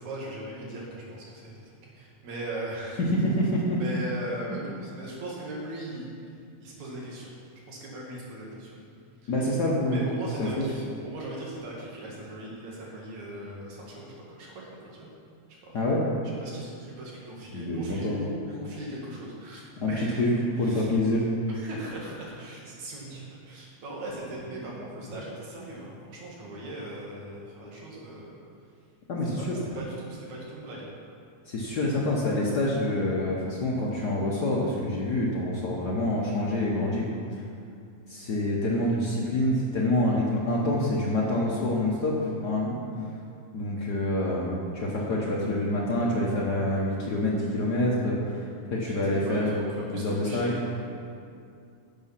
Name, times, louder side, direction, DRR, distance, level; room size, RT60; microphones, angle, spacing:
voice 1, 0.0-1.6 1.9-3.0 3.8-6.1 6.6-7.3 7.7-8.8 9.2-9.3 9.9-15.1 15.5-15.7 16.2-20.2 20.6-20.9 21.5-28.3 29.4-30.9 48.9-50.7, right 1 dB, 70° right, -3 dB, 3.2 m, -39 dB
voice 2, 3.0-3.8 9.3-10.0 10.4-10.6 15.7-16.0 17.5-18.3 19.8-20.3 20.6-21.2 24.6-24.7 29.1-29.6 31.5-37.1 38.1-42.8 43.5-48.4 48.7-49.6 49.9-50.5, left 1 dB, 70° left, -4 dB, 0.9 m, -26 dB
11.0 x 7.1 x 5.7 m, 2.4 s
omnidirectional pair, 3.4 m